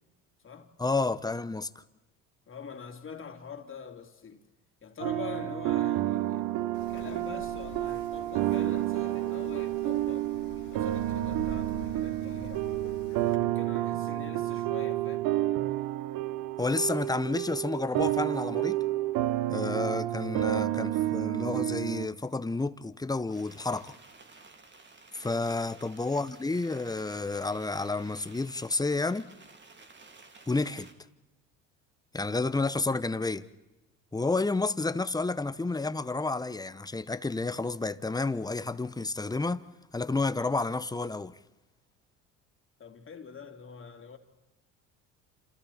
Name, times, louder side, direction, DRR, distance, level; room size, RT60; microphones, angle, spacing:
voice 1, 0.8-1.8 16.6-18.8 19.5-24.0 25.1-29.3 30.5-30.9 32.1-33.5 34.1-39.6 39.9-41.3, left 3 dB, 10° left, 1.0 m, -30 dB
voice 2, 2.5-4.4 4.8-6.5 6.9-12.6 13.1-15.3 25.2-25.4 42.8-44.2, left 6 dB, 35° left, 3.2 m, -44 dB
sound 1, 5.0-22.1, right 14 dB, 65° right, 1.0 m, -30 dB
Wind, 6.7-13.3, left 2 dB, 90° left, 2.6 m, -47 dB
sound 2, 23.3-30.9, right 3 dB, 30° right, 2.8 m, -54 dB
30.0 x 27.5 x 4.4 m
hypercardioid pair, 75°, 36 cm